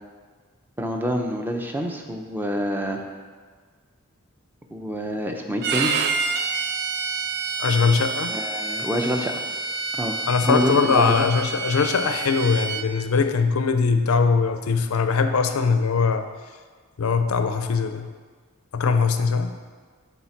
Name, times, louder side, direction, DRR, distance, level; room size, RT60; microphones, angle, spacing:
voice 1, 0.8-3.0 4.7-5.9 8.3-9.3 9.9-10.2 10.4-11.3, equal, 10° right, 3 dB, 0.6 m, -26 dB
Bowed string instrument, 5.6-12.9, right 4 dB, 50° right, 0.5 m, -28 dB
voice 2, 7.6-8.3 10.3-16.3 17.0-18.1 18.7-19.6, left 5 dB, 80° left, 8 dB, 0.5 m, -21 dB
7.0 x 4.2 x 5.8 m, 1.5 s
head